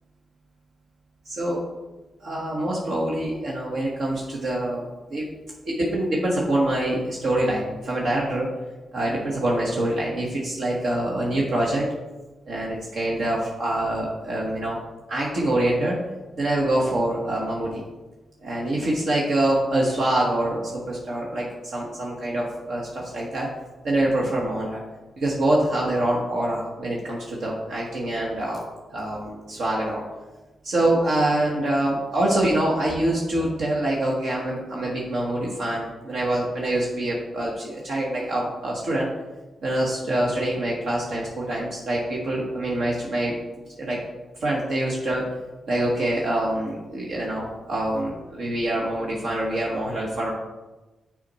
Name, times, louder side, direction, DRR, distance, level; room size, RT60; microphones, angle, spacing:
voice 1, 1.2-1.6 2.2-4.8 5.1-5.3 5.6-8.5 8.9-11.9 12.5-14.8 15.1-16.0 16.4-17.8 18.4-21.5 21.7-23.5 23.8-24.8 25.2-28.6 28.9-30.0 30.6-39.1 39.6-43.3 43.8-44.0 44.4-45.2 45.7-50.3, right 1 dB, 70° right, -3 dB, 1.3 m, -25 dB
6.2 x 5.1 x 4.2 m, 1.1 s
supercardioid pair, 55°, 0 cm